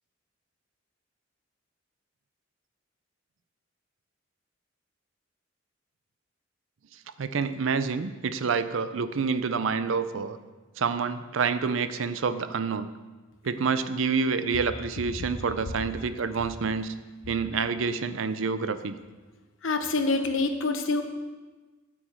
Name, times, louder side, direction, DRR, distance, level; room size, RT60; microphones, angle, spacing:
voice 1, 7.2-10.4 10.8-12.9 13.4-16.9 17.3-18.9, right 5 dB, 90° right, 12 dB, 0.5 m, -28 dB
voice 2, 19.6-21.0, left 3 dB, 90° left, 7 dB, 0.9 m, -26 dB
9.1 x 8.2 x 4.5 m, 1.3 s
head